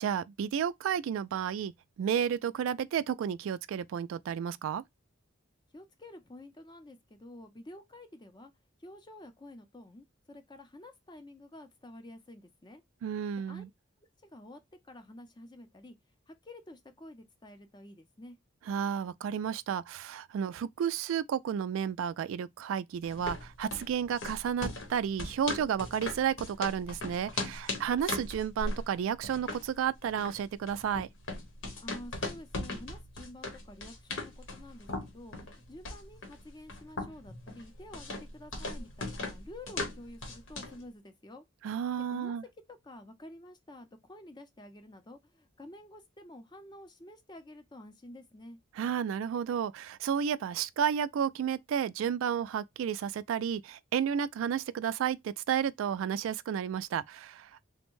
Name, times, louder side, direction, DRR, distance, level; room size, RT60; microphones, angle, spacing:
voice 1, 0.0-1.7 2.0-4.8 13.0-13.7 18.7-31.1 41.6-42.4 48.8-57.5, right 8 dB, 85° right, 0.3 m, -32 dB
voice 2, 5.7-8.5 8.8-12.8 13.5-13.6 14.2-16.0 16.3-18.4 31.8-41.4 42.0-42.4 42.7-48.6, left 1 dB, 20° left, 0.5 m, -50 dB
sound 1, 23.0-40.8, left 2 dB, 75° left, 1.0 m, -39 dB
3.4 x 2.1 x 3.0 m
head